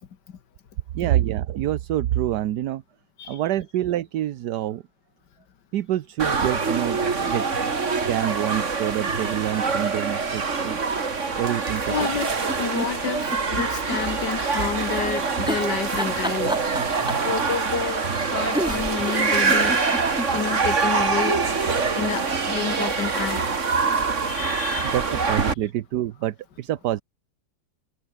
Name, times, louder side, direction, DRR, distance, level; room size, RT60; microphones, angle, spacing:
voice 1, 0.9-2.8 3.3-4.8 5.7-7.5 7.9-10.8 11.4-12.0 24.8-27.0, right 12 dB, 75° right, 1.4 m, -26 dB
sound 1, 6.2-25.5, right 4 dB, 45° right, 2.4 m, -25 dB
voice 2, 10.9-11.4 11.9-12.3 12.6-16.7 17.2-23.8 24.2-24.9, left 7 dB, 90° left, 2.2 m, -30 dB
sound 2, 12.1-14.0 14.4-14.5 15.4-17.3 18.2-18.3 18.5-20.3 20.7-20.8 21.0-21.1, equal, 5° right, 2.1 m, -30 dB
omnidirectional pair, 1.8 m